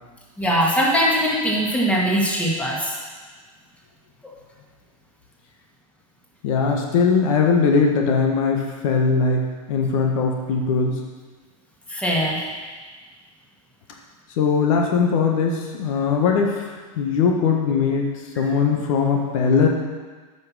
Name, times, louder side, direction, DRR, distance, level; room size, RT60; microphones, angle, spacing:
voice 1, 0.4-2.9 11.9-12.5, equal, 5° left, -4 dB, 2.2 m, -21 dB
voice 2, 6.4-11.0 14.4-19.7, left 5 dB, 65° left, 1 dB, 1.4 m, -20 dB
8.6 x 6.0 x 6.2 m, 1.4 s
hypercardioid pair, 120°, 18 cm